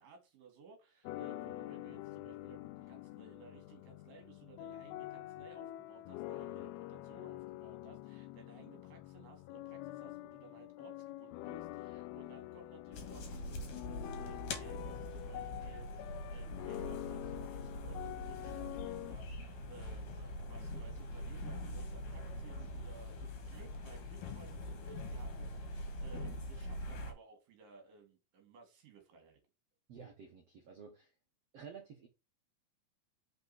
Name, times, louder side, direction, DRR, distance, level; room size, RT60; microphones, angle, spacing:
voice 1, 0.0-29.4, right 5 dB, 60° right, 3.4 m, -58 dB
sound 1, 1.1-19.2, left 16 dB, 85° left, 2.4 m, -46 dB
sound 2, 12.9-27.1, left 1 dB, 60° left, 2.8 m, -43 dB
voice 2, 29.9-31.1 31.5-32.1, right 6 dB, 80° right, 1.4 m, -52 dB
5.9 x 5.2 x 4.1 m
omnidirectional pair, 4.6 m